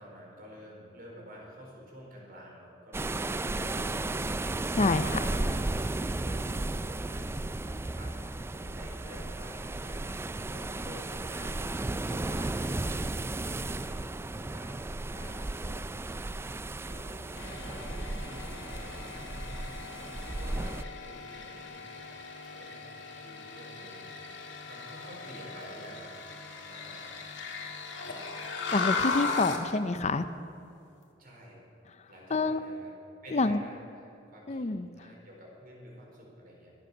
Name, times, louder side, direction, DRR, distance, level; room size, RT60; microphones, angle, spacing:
voice 1, 0.0-8.2 8.5-13.0 13.3-26.1 26.6-27.2 31.2-31.6 32.1-32.9 33.2-34.7 35.0-36.7, equal, 50° right, -2 dB, 4.4 m, -50 dB
sound 1, 2.9-20.8, right 2 dB, 15° right, 0.3 m, -34 dB
voice 2, 4.7-5.0 28.7-30.3 32.3-32.6 33.3-33.6 34.5-34.9, left 3 dB, 40° left, 11 dB, 0.5 m, -27 dB
sound 2, 17.4-29.7, left 4 dB, 75° left, 2.0 m, -38 dB
23.0 x 7.8 x 6.7 m, 2.6 s
head